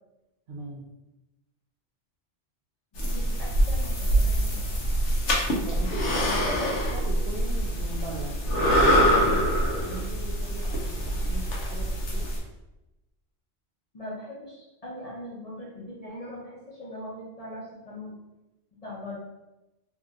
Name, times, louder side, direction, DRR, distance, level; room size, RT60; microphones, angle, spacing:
voice 1, 0.5-0.9 5.7-8.4 8.7-9.4 9.8-12.3, right 2 dB, 70° right, -1 dB, 0.8 m, -39 dB
voice 2, 2.9-4.8 6.1-6.8 9.2-9.4 13.9-18.2 18.8-19.2, left 1 dB, 40° left, -6 dB, 0.7 m, -40 dB
sound 1, 3.0-12.4, equal, 90° left, 1.0 m, -25 dB
2.9 x 2.6 x 2.5 m, 0.97 s
omnidirectional pair, 1.2 m